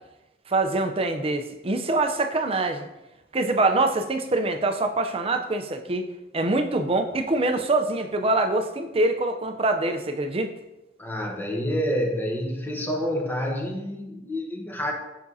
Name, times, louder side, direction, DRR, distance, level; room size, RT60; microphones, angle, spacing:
voice 1, 0.5-2.9 3.3-6.1 6.3-10.5, right 2 dB, 30° right, 6 dB, 0.5 m, -24 dB
voice 2, 11.0-14.9, equal, 10° left, 1 dB, 0.9 m, -28 dB
7.1 x 6.0 x 2.7 m, 0.94 s
head